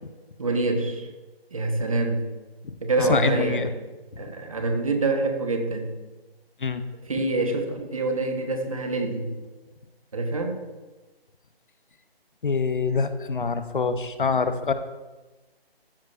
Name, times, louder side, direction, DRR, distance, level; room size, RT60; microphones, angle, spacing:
voice 1, 0.4-1.1 1.5-2.2 2.8-3.6 4.2-5.9 7.1-9.3 10.1-10.6, right 2 dB, 35° right, 5 dB, 0.9 m, -26 dB
voice 2, 2.6-3.7 4.2-4.3 6.6-6.8 12.4-14.7, left 5 dB, 55° left, 11 dB, 0.6 m, -25 dB
13.0 x 6.0 x 2.4 m, 1.2 s
figure-of-eight pair, 165°, 31 cm